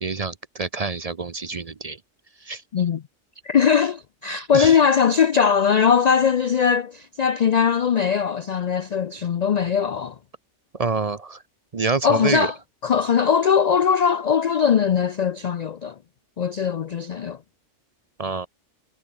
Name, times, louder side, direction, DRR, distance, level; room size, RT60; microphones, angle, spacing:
voice 1, 0.0-2.0 2.4-2.6 4.5-4.8 10.7-11.4 11.7-12.5 18.2-18.5, right 4 dB, 40° right, 0.7 m, -27 dB
voice 2, 3.4-10.2 12.0-12.6 12.8-16.0 16.4-17.4, left 7 dB, 55° left, 0.4 m, -20 dB
omnidirectional pair, 1.2 m